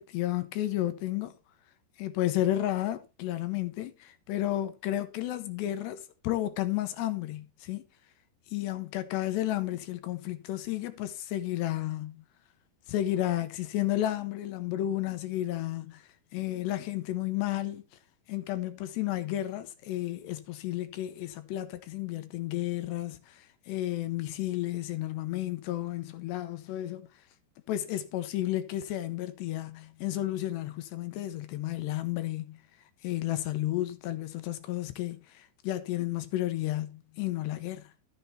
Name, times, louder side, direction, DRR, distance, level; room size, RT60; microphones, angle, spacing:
voice 1, 0.0-1.3 2.0-7.8 8.5-12.2 12.9-16.0 16.3-17.8 18.3-27.1 27.7-32.6 33.0-37.8, left 14 dB, 75° left, 2.8 m, -32 dB
13.0 x 6.8 x 4.4 m
omnidirectional pair, 5.5 m